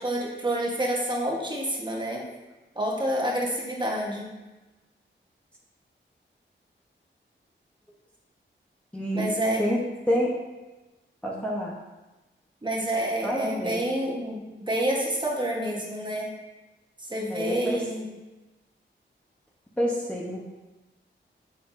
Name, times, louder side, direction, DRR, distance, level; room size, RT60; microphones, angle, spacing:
voice 1, 0.0-2.2 2.7-4.3 9.1-9.6 12.6-16.3 17.1-18.2, right 1 dB, 25° right, -2 dB, 1.2 m, -28 dB
voice 2, 8.9-9.3 9.6-9.8 10.1-10.3 11.2-11.7 13.2-13.8 17.3-17.8 19.8-20.4, equal, 5° left, -4 dB, 0.9 m, -27 dB
6.7 x 5.5 x 2.6 m, 1.1 s
wide cardioid pair, 90°, 20 cm